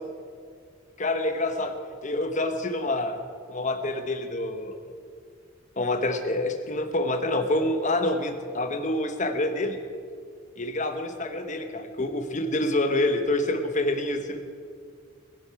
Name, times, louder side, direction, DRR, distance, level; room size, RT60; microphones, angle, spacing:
voice 1, 1.0-1.7 2.0-3.2 3.5-4.8 5.8-9.8 10.6-14.4, left 1 dB, 40° left, 6 dB, 1.2 m, -27 dB
20.0 x 11.0 x 4.8 m, 2.1 s
head